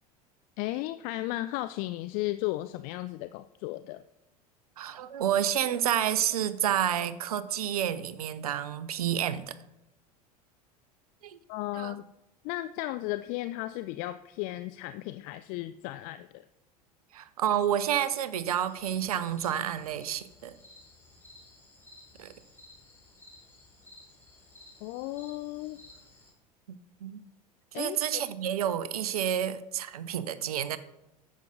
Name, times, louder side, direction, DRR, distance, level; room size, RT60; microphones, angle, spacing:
voice 1, 0.6-4.0 11.5-12.1 12.4-16.4 24.8-25.8 27.7-28.0, left 17 dB, 45° left, 12 dB, 0.4 m, -35 dB
voice 2, 4.8-9.6 11.2-11.4 11.7-12.0 17.1-20.5 22.2-22.3 26.7-27.2 27.7-30.8, right 10 dB, 70° right, 15 dB, 0.7 m, -29 dB
sound 1, 18.6-26.3, left 2 dB, 10° left, 3.9 m, -55 dB
10.0 x 7.5 x 3.9 m, 0.89 s
figure-of-eight pair, 75°, 20 cm